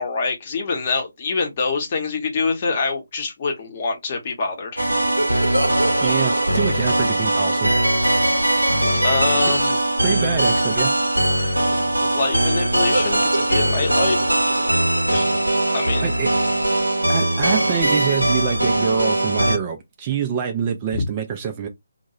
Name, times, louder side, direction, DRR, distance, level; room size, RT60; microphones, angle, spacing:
voice 1, 0.0-5.1 9.0-9.8 12.0-14.2 15.1-15.3 15.7-16.1 20.9-21.1, left 4 dB, 35° left, 0.8 m, -25 dB
sound 1, 4.8-19.6, right 1 dB, 85° right, 0.6 m, -20 dB
voice 2, 6.0-7.7 9.4-9.5 10.0-10.9 16.0-16.3 17.1-21.7, right 8 dB, 25° right, 0.3 m, -25 dB
2.2 x 2.1 x 2.7 m
figure-of-eight pair, 150°, 0 cm